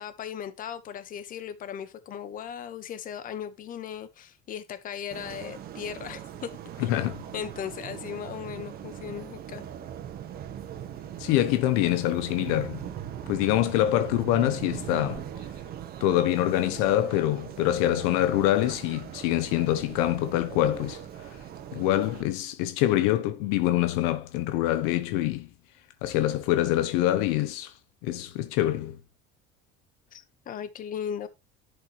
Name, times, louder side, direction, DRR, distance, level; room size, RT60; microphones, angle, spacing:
voice 1, 0.0-6.5 6.8-6.9 7.3-9.7 30.1-31.3, left 8 dB, 40° left, 1.5 m, -37 dB
sound 1, 5.1-22.2, right 10 dB, 45° right, 1.7 m, -40 dB
voice 2, 6.8-7.2 11.2-12.8 13.3-15.2 16.0-21.0 21.7-25.5 26.0-27.7 28.0-29.0, left 13 dB, 80° left, 1.0 m, -25 dB
10.5 x 8.1 x 3.2 m
cardioid pair, 130°, 21 cm